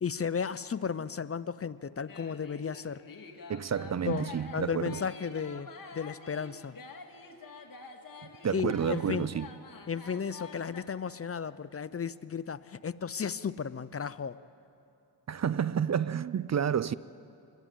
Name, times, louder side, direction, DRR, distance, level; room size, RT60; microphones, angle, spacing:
voice 1, 0.0-3.0 4.1-6.7 8.4-9.3 9.9-14.4, left 6 dB, 30° left, 0.7 m, -34 dB
sound 1, 2.1-10.8, left 4 dB, 50° left, 2.6 m, -48 dB
voice 2, 3.5-5.0 8.2-9.5 15.3-16.9, right 8 dB, 40° right, 0.6 m, -30 dB
26.0 x 21.0 x 9.2 m
cardioid pair, 75°, 43 cm